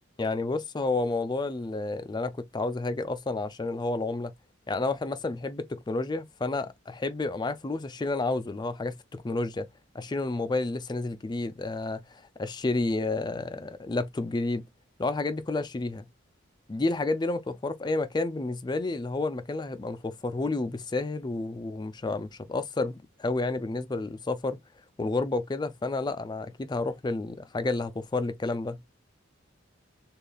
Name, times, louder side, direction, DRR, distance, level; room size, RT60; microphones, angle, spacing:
voice 1, 0.2-4.3 4.7-9.7 9.9-12.0 12.4-14.6 15.0-16.1 16.7-24.6 25.0-28.8, left 2 dB, 20° left, 0.4 m, -30 dB
6.5 x 2.4 x 2.3 m
head